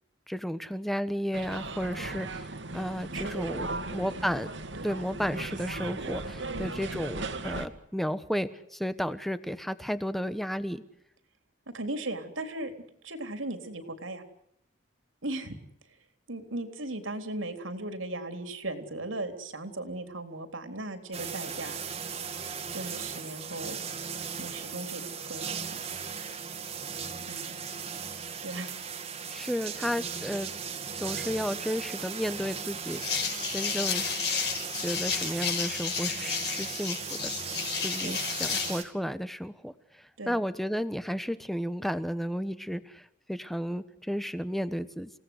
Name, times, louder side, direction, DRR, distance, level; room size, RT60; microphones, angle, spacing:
voice 1, 0.3-2.4 2.7-4.5 4.8-10.8 29.3-30.5 31.0-34.2 34.8-37.3 37.8-45.1, equal, ahead, 13 dB, 1.1 m, -33 dB
sound 1, 1.3-7.7, right 2 dB, 70° right, 2.2 m, -37 dB
voice 2, 3.1-4.4 4.8-4.9 6.5-6.6 11.7-12.7 13.0-14.2 15.2-15.6 16.3-21.8 22.7-23.8 24.4-25.9 27.2-27.6 28.4-28.7 38.0-38.2 40.2-40.4, right 2 dB, 90° right, 7 dB, 3.7 m, -37 dB
sound 2, 21.1-38.8, right 6 dB, 30° right, 2.1 m, -37 dB
sound 3, 32.9-38.8, left 6 dB, 55° left, 5.8 m, -32 dB
29.5 x 18.0 x 8.1 m, 0.79 s
head